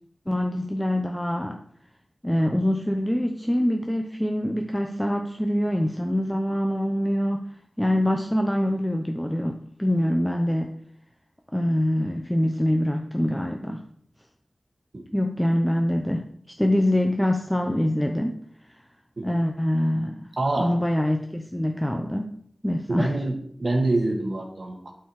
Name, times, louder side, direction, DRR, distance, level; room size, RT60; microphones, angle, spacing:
voice 1, 0.3-1.6 2.2-7.5 7.8-10.7 11.5-13.8 15.1-16.2 16.6-18.4 19.2-20.2 20.6-22.3 22.6-23.1, left 1 dB, 5° left, 3 dB, 0.7 m, -24 dB
voice 2, 20.4-20.7 22.9-24.8, right 2 dB, 55° right, 2 dB, 1.8 m, -25 dB
11.5 x 4.5 x 4.8 m, 0.66 s
wide cardioid pair, 85°, 0 cm